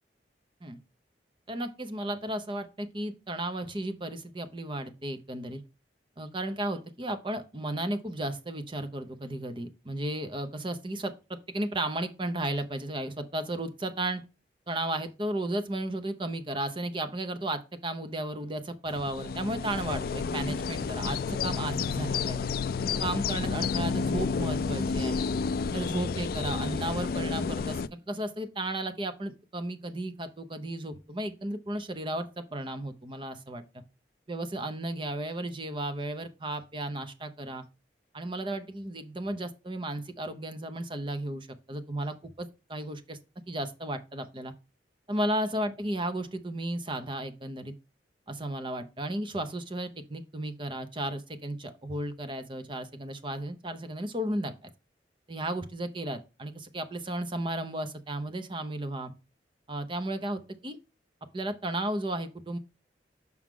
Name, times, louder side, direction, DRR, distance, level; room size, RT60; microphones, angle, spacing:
voice 1, 1.5-5.6 6.2-14.2 14.7-22.5 23.0-25.3 25.7-33.6 34.3-37.6 38.1-43.2 43.5-44.5 45.1-47.7 48.3-54.7 55.3-59.1 59.7-60.8 61.3-62.6, right 1 dB, 30° right, 0.8 m, -34 dB
sound 1, 18.9-27.9, left 5 dB, 55° left, 0.3 m, -30 dB
6.3 x 6.1 x 3.7 m
head